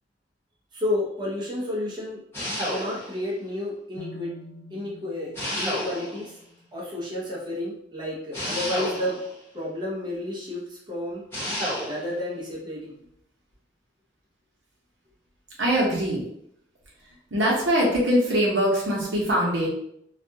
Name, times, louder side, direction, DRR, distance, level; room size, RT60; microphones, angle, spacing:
voice 1, 0.7-2.2 2.7-4.3 4.7-6.3 6.7-9.2 9.5-11.2 11.8-12.9, left 1 dB, 25° right, -6 dB, 0.7 m, -31 dB
sound 1, 2.3-3.2 5.4-6.3 8.3-9.4 11.3-12.1, equal, 15° left, 0.9 m, -30 dB
sound 2, 4.0-7.9, left 1 dB, 65° left, 0.4 m, -47 dB
voice 2, 15.6-16.2 17.3-19.7, equal, 80° right, -4 dB, 0.9 m, -22 dB
2.4 x 2.2 x 2.7 m, 0.72 s
head